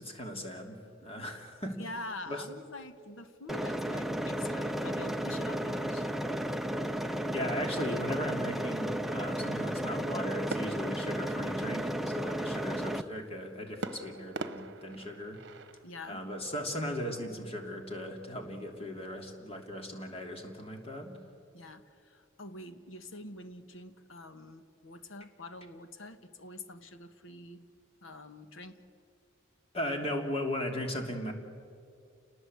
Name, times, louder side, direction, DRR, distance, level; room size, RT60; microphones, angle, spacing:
voice 1, 0.0-1.8 2.3-2.4 7.3-15.4 16.1-21.2 29.7-31.3, equal, 30° left, 3 dB, 2.9 m, -37 dB
voice 2, 1.6-6.1 15.8-16.2 21.5-27.7 28.0-28.8, left 2 dB, 70° left, 9 dB, 1.5 m, -46 dB
sound 1, 3.5-13.0, right 1 dB, ahead, 0.6 m, -33 dB
sound 2, 10.5-12.1 13.8-15.9, right 3 dB, 55° right, 1.1 m, -42 dB
29.5 x 19.5 x 8.0 m, 2.4 s
head